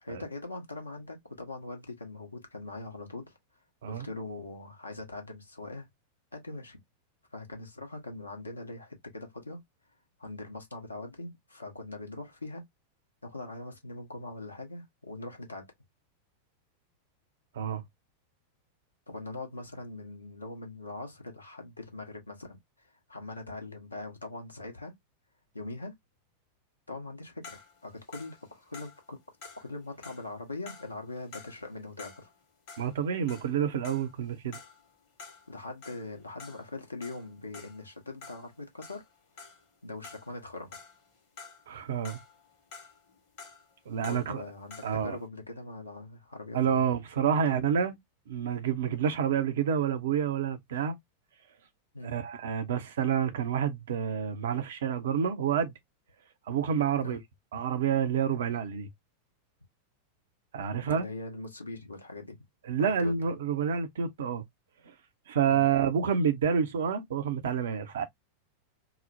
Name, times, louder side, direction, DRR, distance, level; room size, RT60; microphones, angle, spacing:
voice 1, 0.0-3.4 3.9-5.9 6.3-6.8 7.3-9.6 10.2-12.6 13.2-15.7 19.1-24.9 25.5-25.9 26.9-29.2 29.6-32.3 35.5-39.0 39.8-40.8 44.0-47.0 47.5-47.7 51.9-52.2 57.0-57.2 60.8-62.4 62.8-63.1 65.5-65.6, left 2 dB, 80° left, 0.9 m, -42 dB
sound 1, 27.4-32.4 32.7-39.8 40.0-41.7 42.0-45.0, left 5 dB, 50° left, 1.1 m, -50 dB
voice 2, 32.8-34.6 41.7-42.2 43.9-44.4 44.8-45.2 46.5-48.0 48.3-51.0 52.0-55.7 56.5-57.2 57.5-58.9 60.5-61.1 62.7-64.4 65.3-68.0, right 7 dB, 60° right, 0.6 m, -28 dB
2.9 x 2.0 x 2.5 m
figure-of-eight pair, 90°, 0 cm